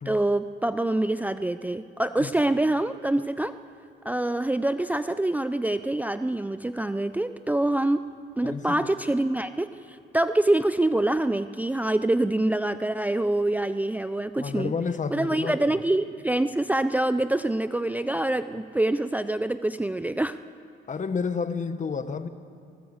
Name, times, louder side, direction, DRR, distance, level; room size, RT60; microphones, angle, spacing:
voice 1, 0.1-3.6 4.0-8.1 8.4-14.7 15.1-20.4, right 1 dB, 10° right, 11 dB, 0.5 m, -25 dB
voice 2, 8.4-8.9 14.4-15.8 20.9-22.3, left 5 dB, 40° left, 11 dB, 1.2 m, -30 dB
20.5 x 18.5 x 8.0 m, 2.4 s
cardioid pair, 90°, 20 cm